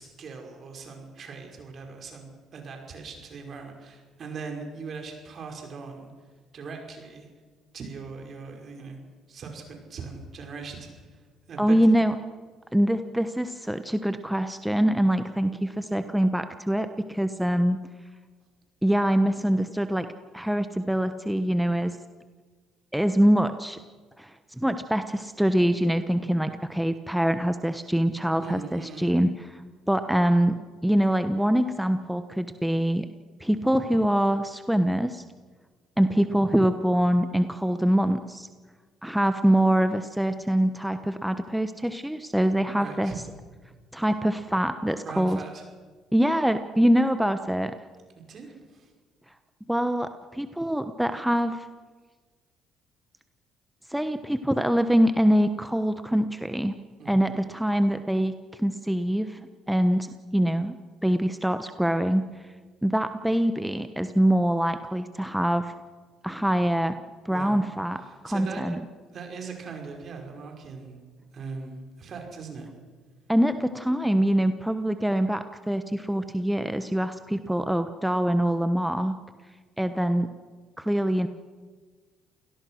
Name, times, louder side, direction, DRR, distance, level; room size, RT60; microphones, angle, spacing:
voice 1, 0.0-6.1 6.5-7.3 7.7-9.0 9.3-11.2 11.5-11.9 28.4-29.1 42.8-43.2 45.1-45.6 48.2-48.9 57.0-57.2 67.3-67.6 68.0-68.8 69.1-71.0 71.3-72.7, right 4 dB, 50° right, 3 dB, 5.5 m, -40 dB
voice 2, 11.6-12.1 12.7-17.8 18.8-20.1 20.3-22.0 22.9-23.8 24.2-29.6 29.9-33.1 33.4-35.2 36.0-38.5 39.0-43.1 43.9-45.4 46.1-47.8 49.7-51.6 53.9-56.8 57.0-59.4 59.7-62.3 62.8-65.7 66.2-67.0 67.2-68.8 73.3-79.2 79.8-80.3 80.8-81.3, equal, 5° right, 9 dB, 1.1 m, -24 dB
28.5 x 18.0 x 6.3 m, 1.4 s
hypercardioid pair, 60°, 0 cm